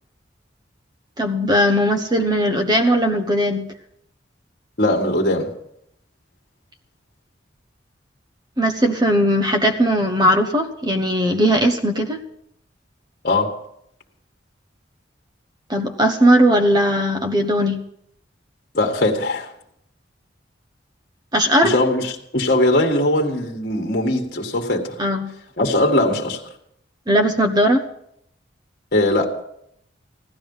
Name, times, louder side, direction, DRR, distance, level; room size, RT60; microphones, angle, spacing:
voice 1, 1.2-3.7 8.6-12.2 15.7-17.8 21.3-21.7 25.0-25.3 27.1-27.8, equal, 20° right, 6 dB, 1.0 m, -18 dB
voice 2, 4.8-5.5 13.2-13.5 18.7-19.5 21.6-25.0 25.6-26.4 28.9-29.4, left 1 dB, 50° left, 2 dB, 1.8 m, -20 dB
16.0 x 12.5 x 5.5 m, 0.74 s
head